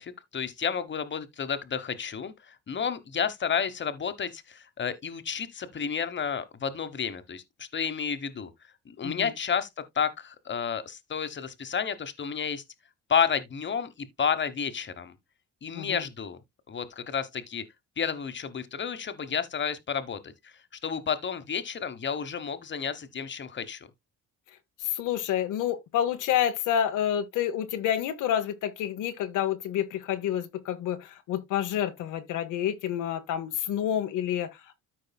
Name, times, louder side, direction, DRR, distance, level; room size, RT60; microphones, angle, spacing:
voice 1, 0.0-8.5 8.9-9.7 9.9-12.6 13.1-15.1 15.6-16.4 16.7-17.6 18.0-20.5 20.8-23.9, left 7 dB, 40° left, 1.2 m, -31 dB
voice 2, 24.8-34.8, left 10 dB, 85° left, 1.0 m, -29 dB
13.5 x 4.7 x 2.3 m
cardioid pair, 90°, 30 cm